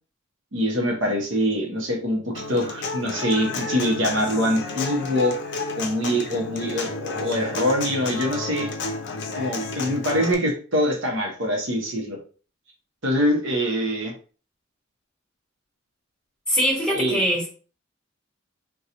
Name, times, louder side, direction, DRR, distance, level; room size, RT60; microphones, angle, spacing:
voice 1, 0.5-5.4 5.7-8.7 9.3-12.2 13.0-14.1 16.9-17.2, equal, 60° right, 0.8 m, -24 dB
Human voice / Acoustic guitar, 2.4-10.3, left 3 dB, 55° left, 0.5 m, -31 dB
voice 2, 16.5-17.5, equal, 5° left, 1.2 m, -22 dB
2.9 x 2.2 x 3.8 m
head